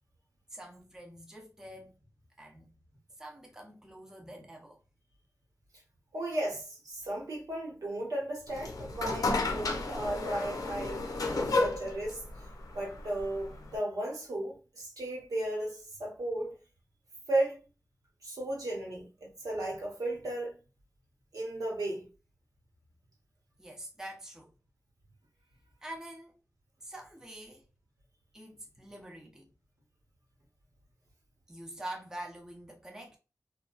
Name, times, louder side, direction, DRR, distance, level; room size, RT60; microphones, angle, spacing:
voice 1, 0.5-2.0 2.4-2.7 3.2-4.8 23.6-24.5 25.8-26.3 26.8-27.7 28.3-29.5 31.5-33.2, right 1 dB, 10° right, 0.6 m, -45 dB
voice 2, 6.1-12.2 12.7-16.5 17.3-17.6 18.2-20.6 21.3-22.1, right 1 dB, 80° right, 1.1 m, -35 dB
sound 1, 8.5-13.8, left 3 dB, 80° left, 0.6 m, -33 dB
2.8 x 2.3 x 2.4 m
wide cardioid pair, 100°, 6 cm